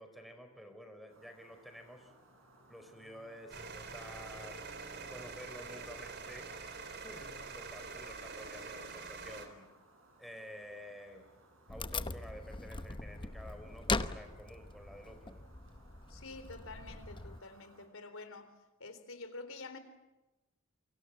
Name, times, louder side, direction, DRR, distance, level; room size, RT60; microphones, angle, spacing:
voice 1, 0.0-2.1 2.7-4.6 5.1-6.5 7.0-9.7 10.2-11.3 11.7-15.4, equal, ahead, 4.5 m, -51 dB
sound 1, 1.1-17.9, right 2 dB, 70° right, 6.9 m, -64 dB
sound 2, 3.5-9.5, right 4 dB, 55° right, 3.6 m, -45 dB
Wood, 11.7-17.4, left 3 dB, 25° left, 0.9 m, -40 dB
voice 2, 16.1-18.5 18.8-19.8, left 3 dB, 85° left, 3.8 m, -48 dB
28.5 x 24.5 x 7.5 m
head